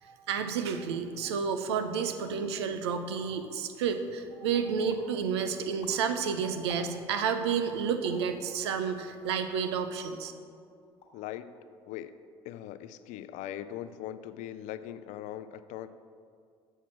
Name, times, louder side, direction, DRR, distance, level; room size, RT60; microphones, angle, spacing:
voice 1, 0.0-10.3, right 6 dB, 85° right, 8 dB, 0.5 m, -31 dB
sound 1, 1.9-2.2 2.7-2.8 3.0-3.5 4.0-4.5 4.9-5.2 5.6-7.3 8.0-8.3 9.0-9.9 10.3-10.5 10.8-11.3 11.5-12.0, left 3 dB, 90° left, 1.1 m, -54 dB
voice 2, 11.1-11.5 11.9-12.2 12.4-15.9, left 11 dB, 65° left, 13 dB, 0.4 m, -40 dB
7.3 x 4.6 x 5.8 m, 2.3 s
hypercardioid pair, 65°, 13 cm